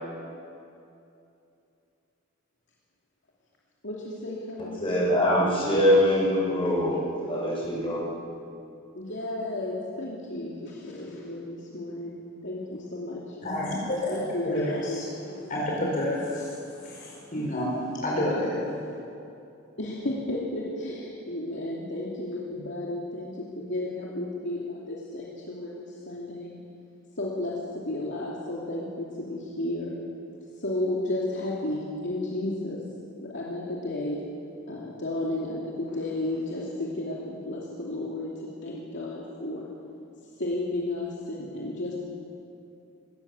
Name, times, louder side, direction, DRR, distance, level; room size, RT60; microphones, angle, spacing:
voice 1, 3.8-5.1 9.0-13.2 14.1-15.0 19.8-26.6 27.2-27.6 27.9-29.9 30.6-32.8 33.3-34.2 34.7-38.3 38.6-39.6 40.4-42.0, left 1 dB, 60° left, -5 dB, 2.7 m, -33 dB
voice 2, 4.8-8.1, equal, 25° left, -5 dB, 7.4 m, -23 dB
voice 3, 13.4-14.2 14.4-15.1 15.5-18.6, left 1 dB, 40° left, -4 dB, 4.7 m, -29 dB
22.5 x 18.0 x 7.2 m, 2.6 s
head